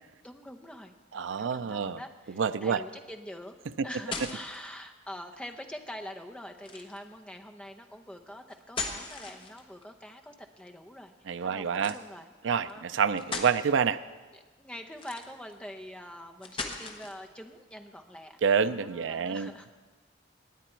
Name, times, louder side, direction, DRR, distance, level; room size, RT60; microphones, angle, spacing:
voice 1, 0.2-3.6 3.8-11.1 11.4-12.8 14.3-19.7, equal, 5° left, 4 dB, 0.8 m, -45 dB
voice 2, 1.1-2.0 2.4-2.8 11.3-11.9 12.4-14.0 18.4-19.5, right 6 dB, 80° right, 12 dB, 0.5 m, -27 dB
sound 1, 3.7-4.7 6.6-7.1 8.5-9.8 11.7-12.0 12.7-12.8 13.2-13.6 14.9-15.5 16.4-17.2, left 4 dB, 30° left, 1.1 m, -38 dB
18.5 x 9.1 x 4.5 m, 1.3 s
head